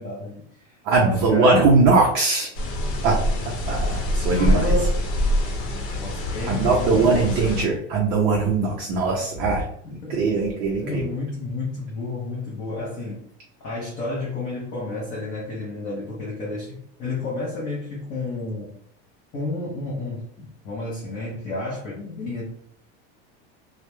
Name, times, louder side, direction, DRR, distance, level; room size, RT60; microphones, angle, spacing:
voice 1, 0.0-0.7 1.0-1.6 2.8-3.0 4.1-5.0 6.0-7.8 9.8-10.2 10.8-13.2 13.6-18.7 19.3-22.5, left 2 dB, 25° left, -5 dB, 0.5 m, -31 dB
voice 2, 0.8-2.5 3.0-3.2 3.7-4.7 6.5-11.1, right 3 dB, 35° right, -2 dB, 0.4 m, -20 dB
sound 1, 2.5-7.6, equal, 85° left, 0.8 m, -25 dB
2.2 x 2.0 x 2.9 m, 0.66 s
supercardioid pair, 170°, 32 cm